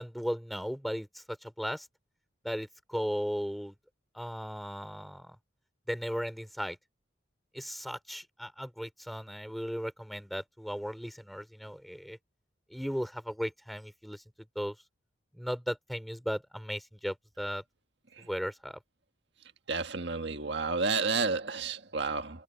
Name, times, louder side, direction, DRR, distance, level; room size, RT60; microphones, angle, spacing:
voice 1, 0.0-1.9 2.4-3.7 4.1-5.4 5.9-6.8 7.5-12.2 12.7-14.2 14.5-14.7 15.3-17.6 18.2-18.8, equal, ahead, 4.3 m, -36 dB
voice 2, 19.7-22.4, right 4 dB, 70° right, 1.7 m, -31 dB
head